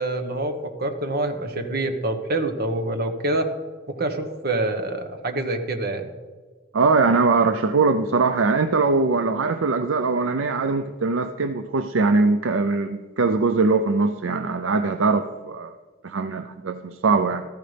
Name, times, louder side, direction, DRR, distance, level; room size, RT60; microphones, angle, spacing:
voice 1, 0.0-3.5 3.9-6.1, right 2 dB, 50° right, 6 dB, 1.2 m, -26 dB
voice 2, 6.7-15.7 16.0-17.4, right 4 dB, 70° right, 9 dB, 0.5 m, -21 dB
14.0 x 13.5 x 3.4 m, 1.4 s
head